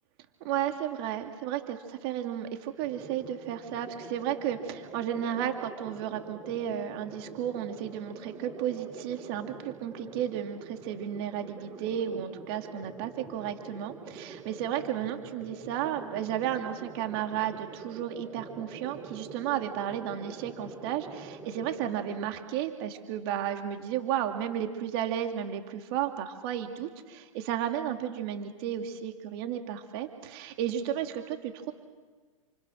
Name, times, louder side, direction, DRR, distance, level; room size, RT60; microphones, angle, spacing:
voice 1, 0.4-31.7, right 10 dB, 45° right, 5 dB, 2.6 m, -33 dB
sound 1, 2.8-22.3, right 4 dB, 20° right, 3.8 m, -46 dB
29.0 x 28.0 x 6.5 m, 1.4 s
hypercardioid pair, 135°, 18 cm